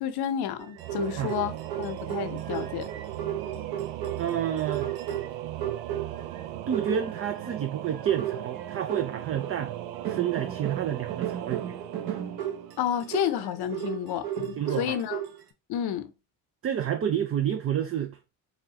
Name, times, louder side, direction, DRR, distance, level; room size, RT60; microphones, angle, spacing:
voice 1, 0.0-2.9 12.8-15.2 15.7-16.1, left 10 dB, 55° left, 0.7 m, -30 dB
sound 1, 0.6-6.4 6.7-7.5 8.0-9.6 10.0-15.4, right 10 dB, 50° right, 1.0 m, -34 dB
Singing / Musical instrument, 0.8-13.3, right 13 dB, 75° right, 0.6 m, -38 dB
voice 2, 4.2-4.9 6.7-9.7 10.0-11.8 14.6-15.0 16.6-18.2, right 9 dB, 30° right, 0.4 m, -29 dB
4.2 x 2.3 x 3.6 m
supercardioid pair, 80°, 48 cm